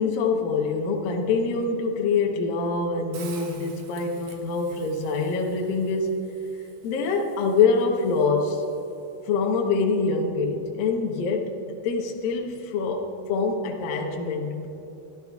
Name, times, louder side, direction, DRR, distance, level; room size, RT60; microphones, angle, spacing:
voice 1, 0.0-6.3 6.8-8.6 9.3-14.7, left 4 dB, 70° left, 1 dB, 2.3 m, -25 dB
Hiss, 3.1-9.2, right 6 dB, 65° right, 2.5 m, -50 dB
24.0 x 13.0 x 2.3 m, 3.0 s
omnidirectional pair, 5.2 m